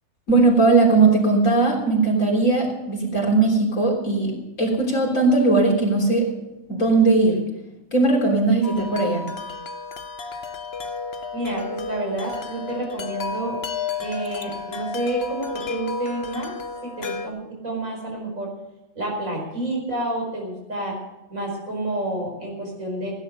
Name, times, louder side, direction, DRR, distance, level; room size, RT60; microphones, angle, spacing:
voice 1, 0.3-6.3 6.7-7.4 7.9-9.3, right 3 dB, 70° left, -1 dB, 4.0 m, -19 dB
Wind chime, 8.6-17.3, left 4 dB, 50° left, 1.1 m, -32 dB
voice 2, 11.3-13.6 14.0-16.5 16.8-18.5 19.0-21.0 21.3-23.1, right 2 dB, 75° right, -1 dB, 5.5 m, -29 dB
16.5 x 9.9 x 6.7 m, 0.94 s
omnidirectional pair, 1.4 m